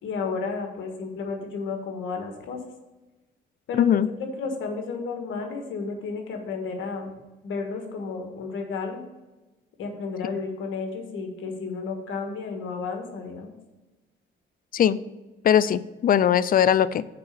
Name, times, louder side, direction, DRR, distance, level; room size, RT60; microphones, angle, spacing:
voice 1, 0.0-2.6 3.7-3.9 4.4-7.1 7.4-9.0 9.8-13.5, left 4 dB, 80° left, 4 dB, 1.6 m, -32 dB
voice 2, 3.8-4.1 14.7-15.0 15.4-17.0, left 9 dB, 45° left, 16 dB, 0.4 m, -20 dB
6.8 x 4.8 x 6.8 m, 1.1 s
cardioid pair, 90°, 20 cm